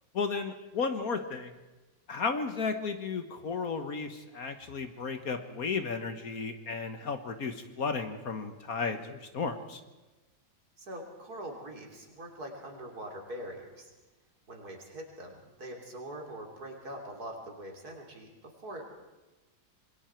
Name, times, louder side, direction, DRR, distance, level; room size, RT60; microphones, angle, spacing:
voice 1, 0.1-1.5 2.1-9.8, left 4 dB, 55° left, 8 dB, 1.6 m, -34 dB
voice 2, 10.8-13.9 14.5-18.9, right 1 dB, 55° right, 1 dB, 3.6 m, -43 dB
26.5 x 22.0 x 4.5 m, 1.1 s
omnidirectional pair, 1.9 m